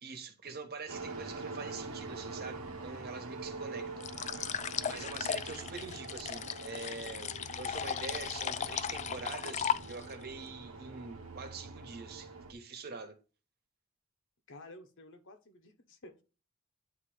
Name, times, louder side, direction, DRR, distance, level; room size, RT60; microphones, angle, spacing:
voice 1, 0.0-4.5 4.8-13.2, right 4 dB, 45° right, 1.3 m, -45 dB
sound 1, 0.9-12.5, right 3 dB, 85° right, 1.1 m, -45 dB
sound 2, 4.0-10.2, left 8 dB, 35° left, 0.3 m, -36 dB
voice 2, 8.1-8.9 14.5-16.2, left 1 dB, 60° left, 1.2 m, -53 dB
9.6 x 3.4 x 4.9 m
head